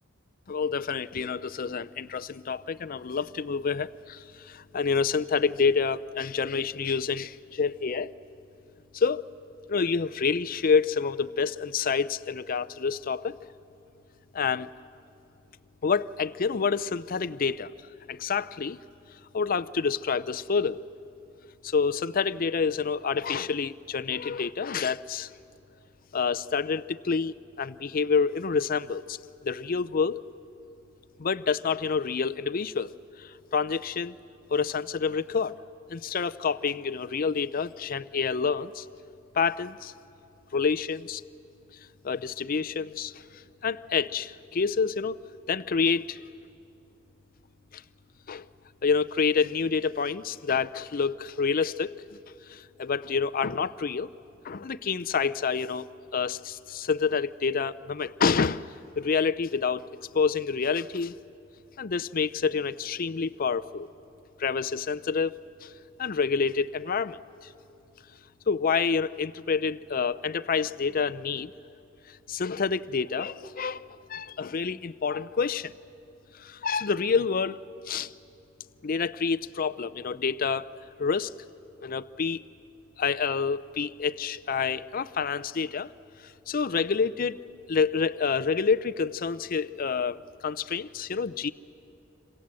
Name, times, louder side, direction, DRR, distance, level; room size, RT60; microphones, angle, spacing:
voice 1, 0.5-8.1 8.9-9.2 9.7-13.4 14.3-14.7 15.8-17.7 18.1-18.8 19.3-20.8 21.6-25.3 26.1-29.2 29.4-30.2 31.2-32.9 33.2-34.1 34.5-35.5 35.9-38.8 39.3-39.9 40.5-41.2 42.0-43.2 43.6-45.2 45.5-46.2 47.7-47.8 48.3-48.5 48.8-51.9 52.5-54.1 54.4-55.9 56.1-58.7 59.0-59.8 60.1-61.1 61.8-63.9 64.4-65.3 65.6-65.7 66.0-67.2 68.5-71.5 72.3-73.8 74.1-75.7 76.4-78.1 78.8-80.7 81.0-81.3 81.8-82.4 83.0-85.9 86.5-87.4 87.7-91.5, left 5 dB, 45° left, 15 dB, 0.5 m, -28 dB
27.0 x 26.0 x 7.6 m, 2.7 s
head